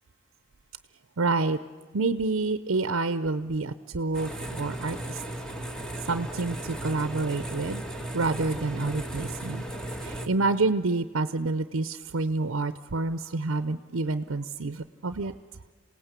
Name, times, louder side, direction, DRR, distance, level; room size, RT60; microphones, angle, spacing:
voice 1, 1.2-1.6 1.9-5.2 6.1-7.8 8.1-9.6 10.3-15.3, right 3 dB, 70° right, 12 dB, 0.7 m, -28 dB
sound 1, 4.1-10.3, right 1 dB, 5° left, 1.5 m, -36 dB
27.0 x 18.0 x 8.2 m, 1.5 s
head